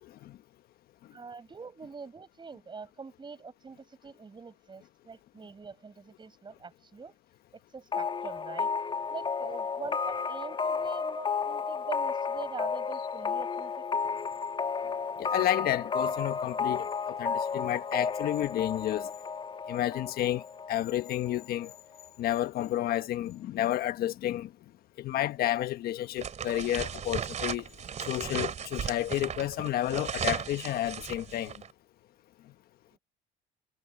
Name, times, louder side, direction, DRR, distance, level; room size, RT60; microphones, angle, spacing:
voice 1, 0.0-0.4 15.2-19.1 19.7-20.4 20.7-21.7 22.2-24.5 25.0-27.7 28.1-31.5, left 13 dB, 60° left, 1.3 m, -31 dB
voice 2, 1.1-7.1 7.7-8.7 9.1-13.9 32.9-33.0, right 4 dB, 25° right, 7.3 m, -44 dB
sound 1, 7.9-21.4, left 5 dB, 30° left, 1.3 m, -32 dB
sound 2, 26.2-31.7, right 8 dB, 40° right, 3.0 m, -36 dB
supercardioid pair, 90°, 17 cm